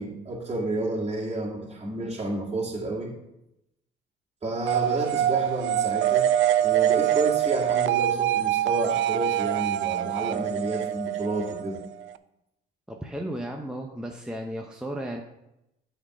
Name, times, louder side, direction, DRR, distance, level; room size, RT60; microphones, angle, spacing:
voice 1, 0.0-3.1 4.4-6.3 6.6-11.8, right 2 dB, 30° right, -4 dB, 2.3 m, -30 dB
sound 1, 4.7-12.2, right 11 dB, 75° right, 0.4 m, -24 dB
voice 2, 12.9-15.2, right 1 dB, 5° right, 1 dB, 0.8 m, -34 dB
9.6 x 4.4 x 5.0 m, 0.87 s
cardioid pair, 90°, 20 cm